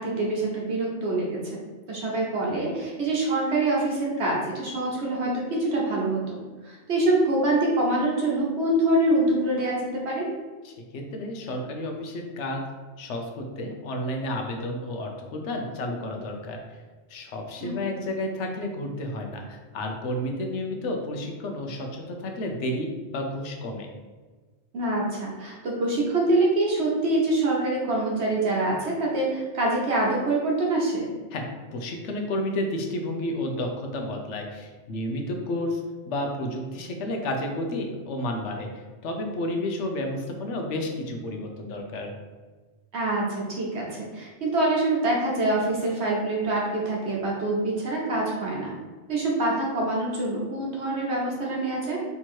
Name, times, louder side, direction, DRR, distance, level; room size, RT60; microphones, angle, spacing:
voice 1, 0.0-1.6 1.9-5.3 5.6-6.4 6.7-10.3 17.6-17.8 24.7-31.1 42.9-48.7 49.1-52.0, right 2 dB, 70° right, -4 dB, 1.4 m, -25 dB
voice 2, 10.6-12.6 13.0-16.6 17.1-23.9 31.3-31.4 31.7-35.8 36.1-42.1, left 1 dB, 85° left, 2 dB, 1.0 m, -31 dB
3.5 x 2.9 x 4.4 m, 1.3 s
omnidirectional pair, 1.2 m